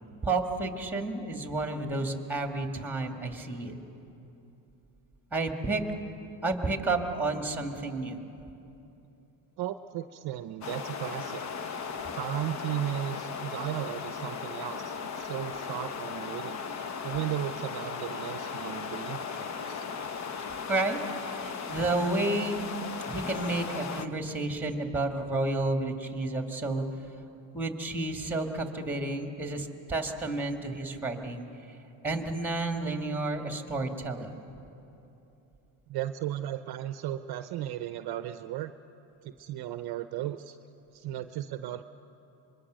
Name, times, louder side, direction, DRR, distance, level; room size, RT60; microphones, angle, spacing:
voice 1, 0.2-3.8 5.3-5.8 6.4-8.2 20.7-21.0 21.3-22.7 23.1-26.8 27.5-31.5 32.0-34.3, right 2 dB, 5° right, 4 dB, 2.1 m, -31 dB
voice 2, 9.6-11.4 12.1-16.6 17.0-19.8 35.9-38.7 39.2-40.6 40.9-41.8, right 12 dB, 50° right, 10 dB, 0.7 m, -35 dB
sound 1, 10.6-24.1, left 6 dB, 35° left, 0.9 m, -37 dB
25.0 x 22.0 x 6.4 m, 2.9 s
supercardioid pair, 105°, 49 cm